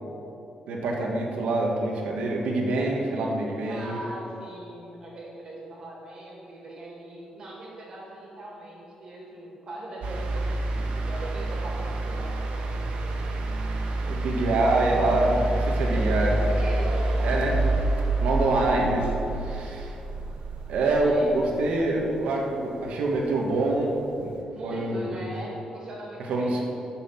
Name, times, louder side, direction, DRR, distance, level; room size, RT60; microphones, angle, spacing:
voice 1, 0.7-4.0 14.1-16.5 17.2-17.5 18.2-19.1 19.4-19.9 20.7-24.3 24.6-25.0 26.3-26.6, right 2 dB, 85° right, -1 dB, 1.5 m, -25 dB
voice 2, 3.7-13.3 15.9-17.5 21.0-21.4 24.5-26.7, right 1 dB, 40° right, -3 dB, 2.1 m, -39 dB
sound 1, 10.0-22.3 23.6-23.7, right 2 dB, 70° right, 1.1 m, -28 dB
8.6 x 5.9 x 7.2 m, 2.9 s
cardioid pair, 170°, 2 cm